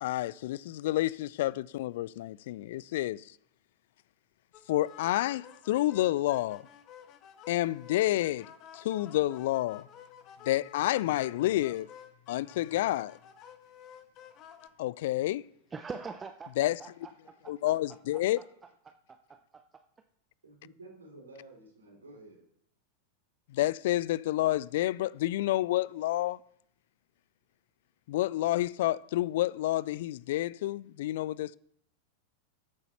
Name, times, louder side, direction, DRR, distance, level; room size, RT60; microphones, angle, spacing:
voice 1, 0.0-3.2 4.7-6.6 7.5-9.9 10.5-11.9 12.3-13.1 14.8-15.4 16.6-16.8 17.5-18.4 23.5-26.4 28.1-31.6, left 15 dB, 55° left, 0.3 m, -29 dB
sound 1, 4.5-14.7, left 9 dB, 35° left, 1.1 m, -52 dB
voice 2, 15.7-17.7 18.9-19.8, right 5 dB, 15° right, 0.6 m, -44 dB
voice 3, 20.4-22.4, right 2 dB, 75° right, 3.4 m, -51 dB
14.0 x 8.0 x 4.3 m
figure-of-eight pair, 90°, 0 cm